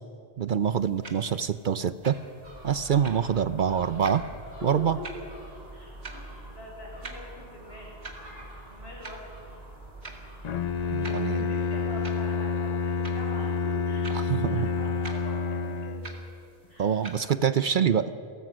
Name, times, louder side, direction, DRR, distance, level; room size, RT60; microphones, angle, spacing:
voice 1, 0.4-2.2 2.6-4.2 4.6-5.0 10.9-11.5 14.1-14.7 16.8-18.1, right 8 dB, 55° right, 13 dB, 0.7 m, -25 dB
sound 1, 0.6-17.3, right 3 dB, 85° right, 2.3 m, -48 dB
Gull seagull, 2.4-10.9, right 1 dB, 40° right, 5.0 m, -45 dB
voice 2, 5.7-7.9 8.6-9.2 10.8-16.1 16.7-17.0, left 1 dB, 70° left, -2 dB, 6.1 m, -44 dB
Bowed string instrument, 10.4-16.3, left 4 dB, 45° left, 0.6 m, -29 dB
29.0 x 15.5 x 6.2 m, 2.6 s
omnidirectional pair, 1.1 m